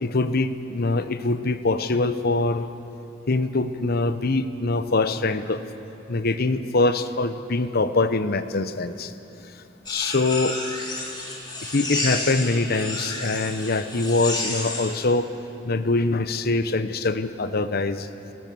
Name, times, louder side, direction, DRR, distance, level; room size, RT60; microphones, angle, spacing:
voice 1, 0.0-2.7 3.3-5.6 6.1-9.1 9.9-10.6 11.6-15.3 15.6-18.1, left 3 dB, 50° left, 12 dB, 0.8 m, -23 dB
sound 1, 9.9-14.9, left 2 dB, 20° left, 3.5 m, -31 dB
29.5 x 13.5 x 7.0 m, 2.9 s
head